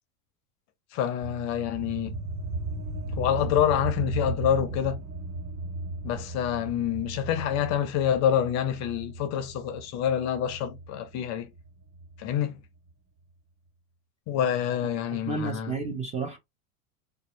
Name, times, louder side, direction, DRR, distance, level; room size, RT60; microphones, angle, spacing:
voice 1, 0.9-2.2 3.1-5.0 6.0-11.5 12.2-12.6 14.3-15.7, left 9 dB, 40° left, 0.5 m, -27 dB
sound 1, 1.2-12.3, right 2 dB, 55° right, 1.5 m, -36 dB
voice 2, 15.1-16.4, right 3 dB, 15° right, 0.4 m, -31 dB
2.6 x 2.3 x 3.0 m
hypercardioid pair, 110°, 44 cm